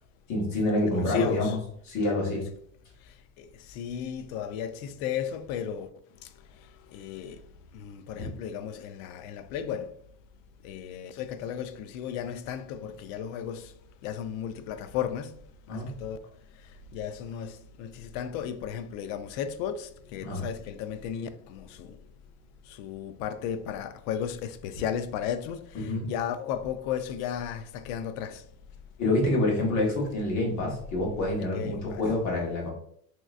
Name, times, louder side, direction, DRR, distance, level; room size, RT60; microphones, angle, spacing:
voice 1, 0.3-1.6 1.9-2.4 8.1-8.3 15.7-15.9 20.2-20.4 25.7-26.1 29.0-32.7, left 2 dB, 40° left, 1.4 m, -27 dB
voice 2, 1.0-1.6 3.4-5.9 6.9-7.4 7.7-9.9 10.6-13.7 14.0-15.3 15.7-16.2 16.9-22.0 22.8-28.4 31.5-32.0, left 8 dB, 70° left, 0.5 m, -34 dB
3.1 x 3.0 x 2.4 m
cardioid pair, 150°, 44 cm